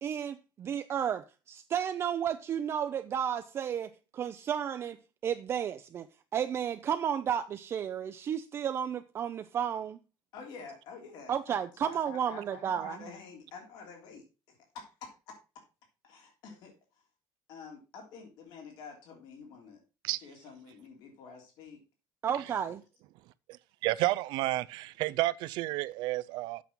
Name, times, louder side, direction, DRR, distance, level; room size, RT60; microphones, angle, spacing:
voice 1, 0.0-5.0 5.2-6.1 6.3-10.0 11.3-13.0 22.2-22.8, right 8 dB, 35° right, 0.5 m, -32 dB
voice 2, 10.3-14.3 14.7-15.4 16.0-16.7 17.5-19.8 20.0-21.8 22.7-22.8, left 5 dB, 75° left, 3.2 m, -48 dB
voice 3, 23.8-26.6, right 17 dB, 90° right, 0.5 m, -31 dB
8.2 x 6.2 x 5.3 m
cardioid pair, 165°, 8 cm